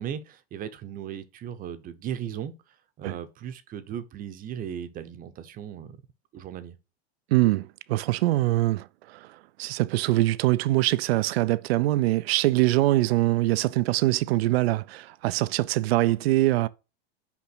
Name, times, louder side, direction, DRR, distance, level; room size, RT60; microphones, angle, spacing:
voice 1, 0.0-2.5 3.0-6.0 6.3-6.8, right 9 dB, 30° right, 0.8 m, -37 dB
voice 2, 7.3-9.3 9.6-16.7, right 17 dB, 75° right, 0.5 m, -23 dB
5.9 x 5.1 x 6.0 m
supercardioid pair, 135°, 31 cm